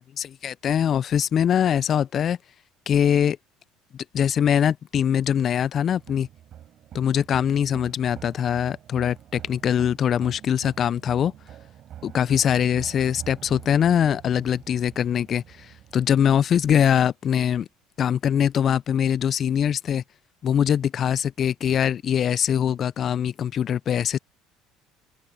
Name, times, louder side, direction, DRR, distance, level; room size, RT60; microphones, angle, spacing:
voice 1, 0.2-2.4 2.9-3.4 4.1-6.3 6.9-11.3 12.0-17.7 18.0-20.0 20.4-24.2, left 9 dB, 45° left, 0.8 m, -22 dB
sound 1, 6.0-16.3, right 11 dB, 50° right, 7.3 m, -45 dB
open air
hypercardioid pair, 65°, 0 cm